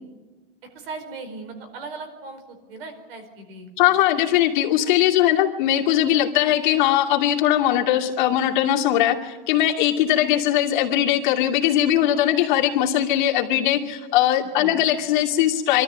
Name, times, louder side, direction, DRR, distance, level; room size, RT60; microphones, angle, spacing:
voice 1, 0.7-3.7 14.6-14.8, right 3 dB, 75° right, 7 dB, 4.8 m, -38 dB
voice 2, 3.8-15.8, left 12 dB, 55° left, 0 dB, 2.5 m, -20 dB
25.5 x 13.5 x 9.6 m, 1.2 s
supercardioid pair, 180°, 29 cm